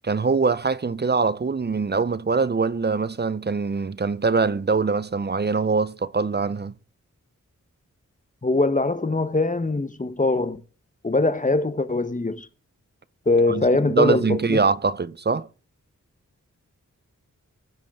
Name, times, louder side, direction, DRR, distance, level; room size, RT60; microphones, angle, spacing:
voice 1, 0.0-6.7 13.5-15.5, right 4 dB, 35° right, 0.6 m, -23 dB
voice 2, 8.4-10.6 11.0-12.5 13.3-14.6, left 2 dB, 25° left, 1.1 m, -22 dB
20.5 x 7.4 x 3.7 m
wide cardioid pair, 85°, 31 cm